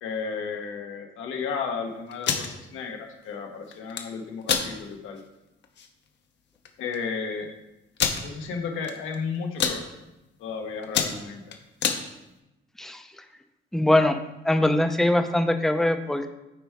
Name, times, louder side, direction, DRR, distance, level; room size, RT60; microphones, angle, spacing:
voice 1, 0.0-5.2 6.8-7.5 8.1-9.8 10.4-11.5, left 5 dB, 85° left, 3 dB, 1.1 m, -33 dB
sound 1, 2.1-2.5 3.7-4.0 4.4-4.7 5.2-5.3 5.6-5.9 6.7-6.8 6.9-7.0 8.0-8.2 8.8-9.2 9.4-9.8 10.3-10.5 10.8-12.0, left 7 dB, 65° left, 0.8 m, -26 dB
voice 2, 13.7-14.2 14.4-16.3, left 1 dB, ahead, 7 dB, 0.5 m, -22 dB
8.0 x 4.4 x 3.5 m, 0.97 s
cardioid pair, 90°, 20 cm